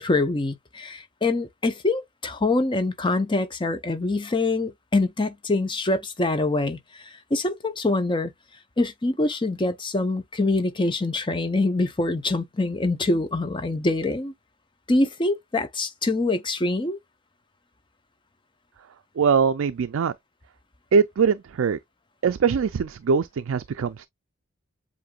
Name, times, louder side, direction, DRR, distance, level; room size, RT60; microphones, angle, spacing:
voice 1, 0.0-6.8 7.3-8.3 8.8-14.3 14.9-17.0, left 2 dB, 20° left, 0.6 m, -24 dB
voice 2, 19.2-20.1 20.9-21.8 22.2-24.1, right 6 dB, 65° right, 0.4 m, -22 dB
7.8 x 2.6 x 2.3 m
head